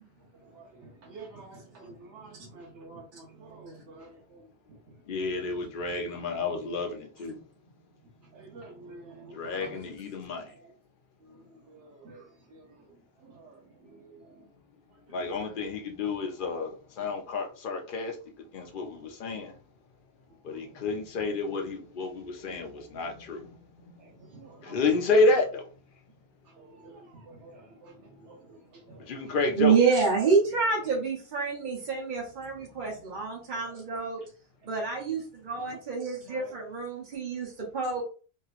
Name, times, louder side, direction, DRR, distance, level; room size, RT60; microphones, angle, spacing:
voice 1, 0.2-5.0 5.4-5.7 8.0-9.9 10.5-10.7 11.2-14.5 14.9-15.0 15.3-15.7 18.9-19.4 20.4-21.0 24.0-25.1 26.4-29.4 30.5-31.0 31.8-31.9 33.1-33.2 33.5-33.6 33.9-34.3 35.5-35.8 36.3-36.5, right 3 dB, 85° right, 1.0 m, -51 dB
voice 2, 5.1-7.4 9.3-10.5 15.1-18.2 18.5-19.5 20.4-23.5 24.6-25.6 29.1-29.8, left 3 dB, 55° left, 0.8 m, -29 dB
voice 3, 29.6-34.2 34.7-38.0, right 5 dB, 50° right, 0.9 m, -28 dB
3.3 x 2.8 x 2.4 m
omnidirectional pair, 1.2 m